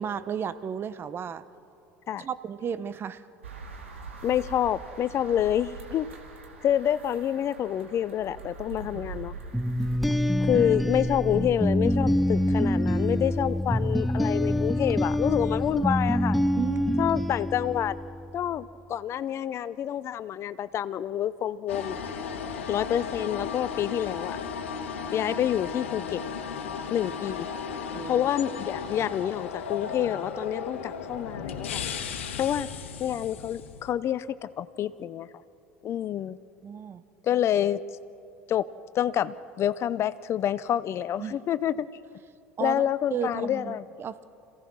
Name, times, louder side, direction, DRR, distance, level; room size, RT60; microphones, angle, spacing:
voice 1, 0.0-1.4 2.2-3.2 8.9-9.0 10.1-10.2 16.5-17.2 27.9-28.3 36.6-37.0 41.2-41.4 42.6-44.2, right 7 dB, 35° right, 15 dB, 0.8 m, -33 dB
sound 1, 3.4-10.0, right 4 dB, 80° right, 2.0 m, -43 dB
voice 2, 4.2-6.1 6.6-9.3 10.4-16.4 17.0-18.0 18.3-22.0 22.7-24.4 25.1-26.2 26.9-27.5 28.0-31.8 32.4-32.7 33.0-35.3 35.8-36.4 37.2-37.8 38.5-38.7 38.9-41.9 42.6-43.8, left 10 dB, 40° left, 16 dB, 0.5 m, -28 dB
sound 2, 9.5-18.3, left 1 dB, ahead, 0.7 m, -26 dB
sound 3, 21.7-33.9, left 6 dB, 75° left, 1.3 m, -35 dB
27.0 x 16.5 x 6.2 m, 2.7 s
hypercardioid pair, 70°, 7 cm